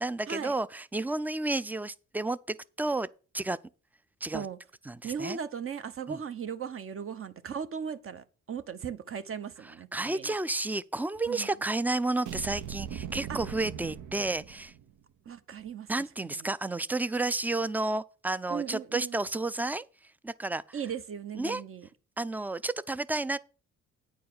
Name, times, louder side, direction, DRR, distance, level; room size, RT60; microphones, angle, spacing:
voice 1, 0.0-3.1 3.3-3.6 4.2-4.5 4.9-5.4 6.1-6.2 9.9-14.7 15.9-19.9 20.2-20.8 21.4-21.6 22.2-23.4, right 2 dB, 5° right, 0.4 m, -31 dB
voice 2, 5.0-10.4 11.3-11.5 13.3-13.4 15.2-15.9 16.2-16.5 18.5-19.2 20.7-21.9, right 7 dB, 45° right, 1.0 m, -37 dB
sound 1, 12.3-15.0, right 9 dB, 75° right, 0.9 m, -40 dB
9.3 x 4.7 x 7.5 m
cardioid pair, 90°, 30 cm